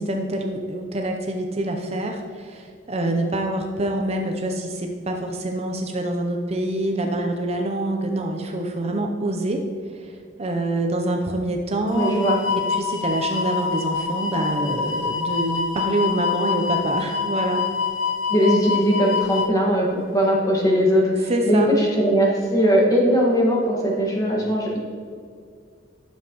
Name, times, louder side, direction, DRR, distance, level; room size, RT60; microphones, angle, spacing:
voice 1, 0.0-9.6 9.9-12.3 12.7-17.6 21.3-21.7, right 1 dB, 35° right, 3 dB, 0.6 m, -26 dB
sound 1, 11.9-19.5, left 5 dB, 80° left, 0.7 m, -26 dB
voice 2, 11.9-12.4 18.3-19.9 20.1-24.8, equal, 20° left, -3 dB, 1.6 m, -19 dB
11.0 x 7.1 x 3.0 m, 2.2 s
head